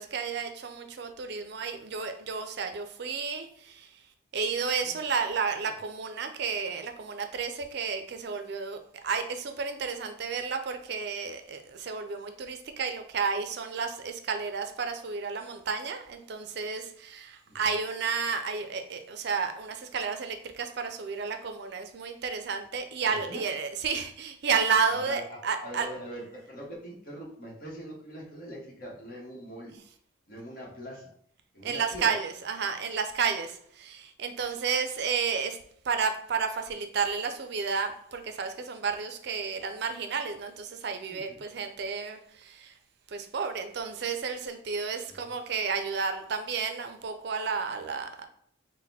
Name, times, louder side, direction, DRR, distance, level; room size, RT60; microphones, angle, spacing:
voice 1, 0.0-4.0 4.3-8.8 9.0-25.9 31.6-35.6 35.8-42.8 43.1-48.2, right 5 dB, 55° right, 7 dB, 0.4 m, -32 dB
voice 2, 23.1-23.4 24.9-29.8 30.3-31.1 31.5-32.1 41.1-41.4 45.1-45.2, equal, 45° left, -2 dB, 1.2 m, -42 dB
4.0 x 2.1 x 4.1 m, 0.64 s
head